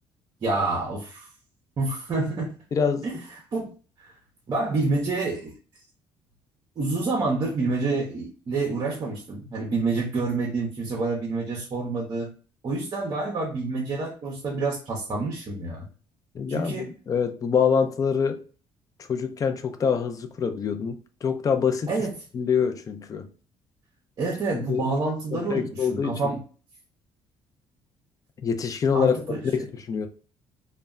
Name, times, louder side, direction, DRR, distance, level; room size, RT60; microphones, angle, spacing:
voice 1, 0.4-1.3 1.8-2.6 3.0-3.1 3.5-3.7 4.5-5.5 6.8-12.3 12.6-15.8 16.5-16.9 21.9-22.1 24.2-26.4 28.9-29.4, right 3 dB, 35° right, 0.7 m, -28 dB
voice 2, 2.7-3.2 16.3-18.4 19.0-21.9 22.3-23.3 24.5-24.9 25.3-26.2 28.4-30.1, left 6 dB, 30° left, 0.4 m, -25 dB
2.1 x 2.1 x 3.5 m
cardioid pair, 125°, 11 cm